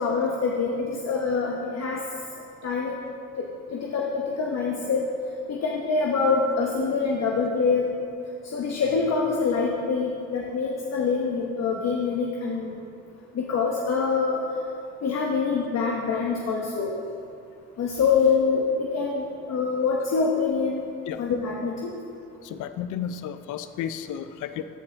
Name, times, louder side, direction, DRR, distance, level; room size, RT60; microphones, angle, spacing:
voice 1, 0.0-2.0 2.6-3.1 3.7-5.0 5.5-7.8 8.5-12.8 13.3-14.4 15.0-16.9 17.8-20.9 21.2-21.9, left 5 dB, 60° left, -1 dB, 1.0 m, -25 dB
voice 2, 22.4-24.6, left 9 dB, 80° left, 10 dB, 0.5 m, -33 dB
14.0 x 5.5 x 3.9 m, 2.5 s
cardioid pair, 90°, 30 cm